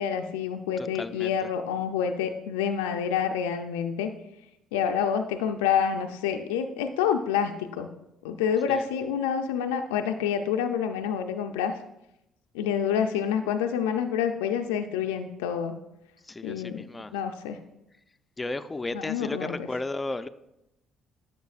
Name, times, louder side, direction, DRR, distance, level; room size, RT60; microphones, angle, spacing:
voice 1, 0.0-4.1 4.7-7.9 8.2-11.8 12.5-15.7 16.4-16.8 17.1-17.6 18.9-19.7, left 8 dB, 90° left, 6 dB, 0.4 m, -28 dB
voice 2, 0.8-1.5 8.7-8.9 16.2-17.1 18.4-20.3, left 2 dB, 25° left, 12 dB, 0.4 m, -34 dB
10.5 x 6.6 x 2.4 m, 0.87 s
hypercardioid pair, 60°, 0 cm